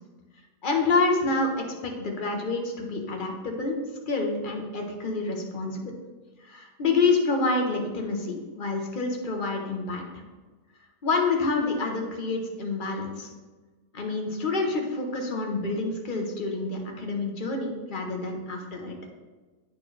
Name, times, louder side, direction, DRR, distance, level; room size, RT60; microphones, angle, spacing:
voice 1, 0.6-3.8 4.1-6.0 6.4-10.2 11.0-13.3 13.9-18.9, left 3 dB, 35° left, 2 dB, 0.9 m, -28 dB
11.0 x 4.2 x 3.3 m, 1.3 s
omnidirectional pair, 1.8 m